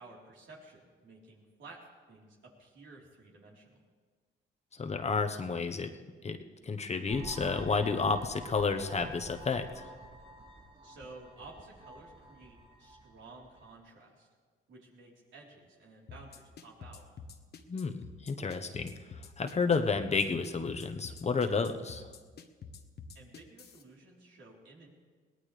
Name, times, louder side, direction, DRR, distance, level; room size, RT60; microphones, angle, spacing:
voice 1, 0.0-3.8 10.8-14.3 14.7-17.0 23.1-24.9, right 3 dB, 70° right, -3 dB, 3.9 m, -53 dB
voice 2, 4.7-5.9 6.2-6.4 6.6-9.9 17.7-18.9 19.4-22.1, left 4 dB, 35° left, 6 dB, 1.1 m, -31 dB
sound 1, 7.0-13.8, right 1 dB, 30° right, 6.2 m, -49 dB
sound 2, 16.1-23.8, left 5 dB, 55° left, 1.2 m, -48 dB
22.0 x 18.0 x 3.3 m, 1.5 s
cardioid pair, 90°, 20 cm